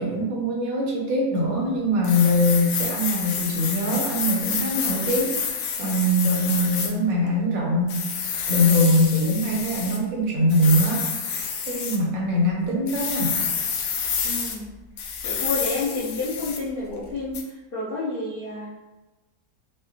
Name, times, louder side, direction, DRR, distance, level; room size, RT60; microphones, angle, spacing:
voice 1, 0.0-8.1 8.5-11.1 11.7-13.4, equal, 60° right, -2 dB, 1.1 m, -22 dB
sound 1, 2.0-6.9 7.9-10.0 10.5-12.0 12.9-14.5 15.0-16.7 17.3-17.4, left 6 dB, 75° left, 1.1 m, -28 dB
voice 2, 14.2-14.7 15.0-18.8, left 3 dB, 40° left, -10 dB, 0.8 m, -30 dB
4.8 x 2.1 x 2.8 m, 1.1 s
omnidirectional pair, 1.9 m